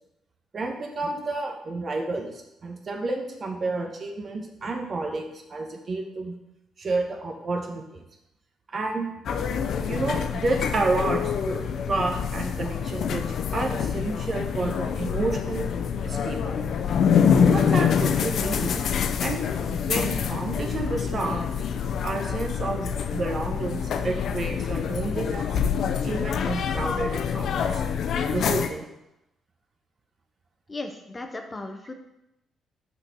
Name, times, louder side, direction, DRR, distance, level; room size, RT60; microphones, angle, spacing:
voice 1, 0.5-6.3 6.8-8.0 8.7-9.1 9.9-13.3 13.5-15.7 16.0-16.7 17.3-18.8 19.2-19.4 19.7-21.4 22.0-25.5 26.0-27.8 28.3-28.9, right 3 dB, 45° right, 3 dB, 1.2 m, -30 dB
sound 1, 9.3-28.7, left 7 dB, 65° left, 0.6 m, -26 dB
voice 2, 30.7-31.9, left 2 dB, 25° left, 5 dB, 0.8 m, -36 dB
6.4 x 4.1 x 6.2 m, 0.89 s
cardioid pair, 90°, 0 cm